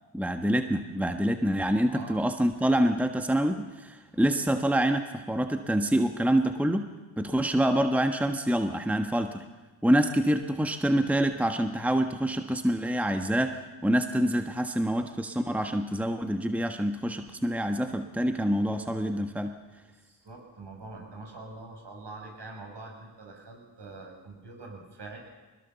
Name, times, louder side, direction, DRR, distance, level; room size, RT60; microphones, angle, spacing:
voice 1, 0.1-6.9 7.2-9.5 9.8-19.5, right 1 dB, 5° right, 6 dB, 1.4 m, -26 dB
voice 2, 1.9-2.2 19.9-25.2, right 3 dB, 55° right, 1 dB, 6.6 m, -44 dB
21.5 x 20.0 x 7.0 m, 1.2 s
cardioid pair, 50°, 49 cm